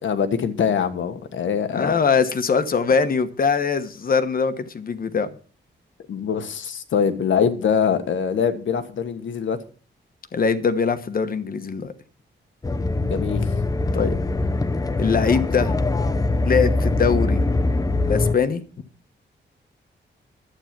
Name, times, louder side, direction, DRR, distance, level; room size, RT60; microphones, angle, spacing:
voice 1, 0.0-1.9 6.1-9.6 13.0-13.5, left 7 dB, 85° left, 1.4 m, -23 dB
voice 2, 1.7-5.4 10.3-11.9 13.9-14.1 15.0-15.8 16.4-17.4 18.0-18.6, left 5 dB, 50° left, 1.2 m, -22 dB
sound 1, 12.6-18.4, left 2 dB, 20° left, 0.7 m, -22 dB
11.5 x 8.9 x 6.0 m
wide cardioid pair, 150°, 19 cm